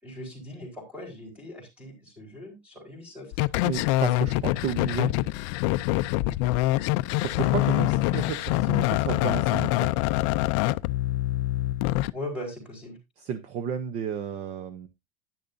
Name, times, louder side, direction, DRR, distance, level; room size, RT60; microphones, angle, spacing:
voice 1, 0.0-3.3 12.1-13.0, left 1 dB, 5° right, 3.8 m, -39 dB
sound 1, 3.3-12.1, left 17 dB, 45° left, 0.4 m, -25 dB
voice 2, 3.6-5.1 7.2-9.9 13.2-14.9, right 7 dB, 30° right, 0.7 m, -32 dB
10.5 x 10.0 x 2.6 m
supercardioid pair, 175°, 21 cm